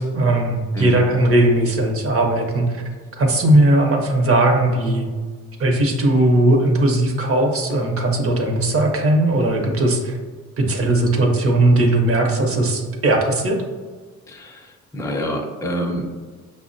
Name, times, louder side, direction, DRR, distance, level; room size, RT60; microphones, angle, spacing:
voice 1, 0.0-2.8 3.2-5.0 5.6-10.1 10.6-13.6, right 1 dB, 50° right, 2 dB, 0.7 m, -18 dB
voice 2, 14.3-16.1, equal, 10° left, 1 dB, 0.5 m, -27 dB
5.5 x 2.1 x 2.6 m, 1.5 s
cardioid pair, 90°, 30 cm